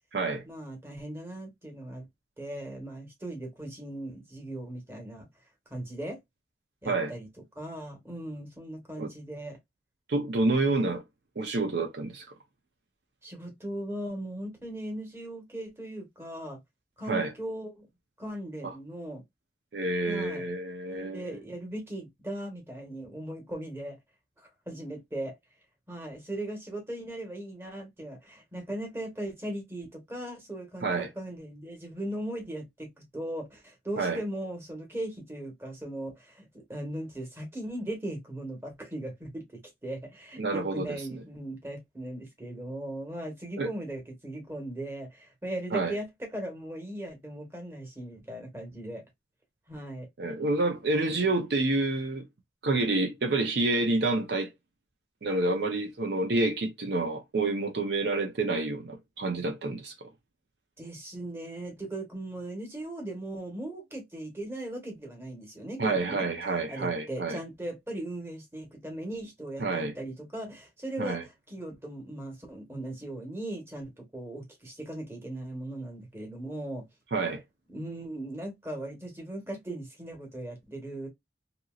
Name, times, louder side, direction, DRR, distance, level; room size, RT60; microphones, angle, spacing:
voice 1, 0.4-2.1 2.4-5.3 5.7-6.2 6.8-7.3 7.5-9.6 13.2-16.6 17.0-17.9 18.2-19.2 20.1-20.4 20.9-24.0 24.4-25.3 25.9-39.4 39.8-46.1 46.3-49.0 49.7-50.1 51.2-51.3 60.8-66.3 66.7-76.8 77.7-81.1, right 1 dB, 15° right, 1.2 m, -38 dB
voice 2, 10.1-11.0 11.4-12.3 17.1-17.3 18.6-18.7 19.7-21.4 30.8-31.1 34.0-34.2 40.4-41.0 43.6-43.7 45.7-46.0 50.2-52.2 52.6-54.5 55.2-60.1 65.8-67.4 69.6-69.9 71.0-71.2 77.1-77.4, right 2 dB, 65° right, 0.6 m, -28 dB
2.9 x 2.6 x 2.3 m
head